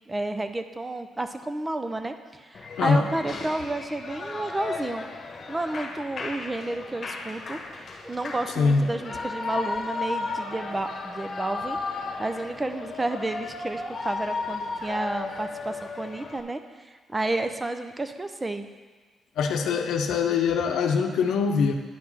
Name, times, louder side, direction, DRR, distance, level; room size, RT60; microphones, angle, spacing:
voice 1, 0.1-5.1 5.5-7.6 8.0-11.8 12.2-18.7, right 2 dB, 15° right, 8 dB, 0.5 m, -31 dB
Shout / Cheering, 2.5-16.4, left 3 dB, 45° left, 1.2 m, -35 dB
voice 2, 19.4-21.7, left 5 dB, 80° left, 5 dB, 0.8 m, -23 dB
10.0 x 4.9 x 5.6 m, 1.4 s
cardioid pair, 105°, 0 cm